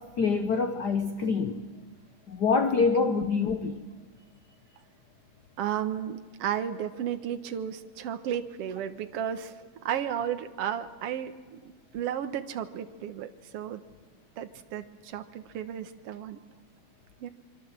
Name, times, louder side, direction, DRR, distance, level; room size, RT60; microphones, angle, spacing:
voice 1, 0.0-1.6 2.3-3.8, left 4 dB, 70° left, 0.9 m, -26 dB
voice 2, 5.6-13.8 14.4-16.4 17.2-17.3, right 9 dB, 60° right, 2.0 m, -34 dB
26.0 x 24.0 x 7.5 m
omnidirectional pair, 3.3 m